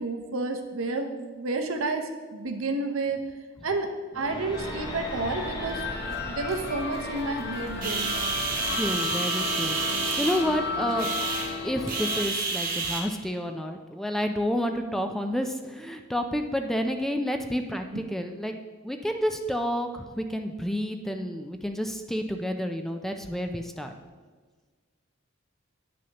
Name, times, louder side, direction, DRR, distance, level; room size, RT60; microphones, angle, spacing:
voice 1, 0.0-3.2 3.6-3.9 4.1-8.4, right 3 dB, 85° right, 6 dB, 0.7 m, -31 dB
sound 1, 4.1-9.2, left 1 dB, 20° left, 0.7 m, -41 dB
sound 2, 4.5-12.3, left 3 dB, 55° left, 0.8 m, -33 dB
sound 3, 7.8-13.0, right 4 dB, 45° right, 1.0 m, -29 dB
voice 2, 8.7-11.1 11.6-18.5 18.8-23.9, equal, ahead, 5 dB, 0.3 m, -30 dB
9.3 x 6.2 x 2.9 m, 1.4 s
head